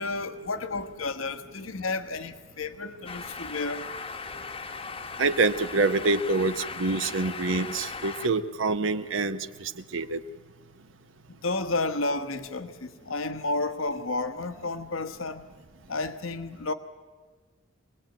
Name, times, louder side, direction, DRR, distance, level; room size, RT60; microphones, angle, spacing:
voice 1, 0.0-3.9 11.4-15.4 15.9-16.7, left 3 dB, 85° left, 1.2 m, -31 dB
sound 1, 3.1-8.3, left 4 dB, 30° left, 0.9 m, -38 dB
voice 2, 5.2-10.2, right 3 dB, 70° right, 0.9 m, -26 dB
25.0 x 19.5 x 9.0 m
head